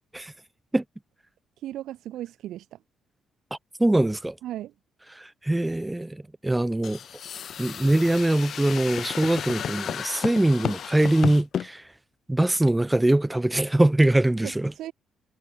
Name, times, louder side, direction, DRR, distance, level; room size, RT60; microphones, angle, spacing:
voice 1, 1.6-2.8 4.4-4.7 14.4-14.9, right 13 dB, 80° right, 1.8 m, -36 dB
voice 2, 3.8-4.4 5.2-7.0 7.6-11.8 12.3-14.7, right 1 dB, 10° right, 2.7 m, -22 dB
sound 1, 6.8-11.7, left 8 dB, 60° left, 0.9 m, -33 dB
cardioid pair, 90°, 0 cm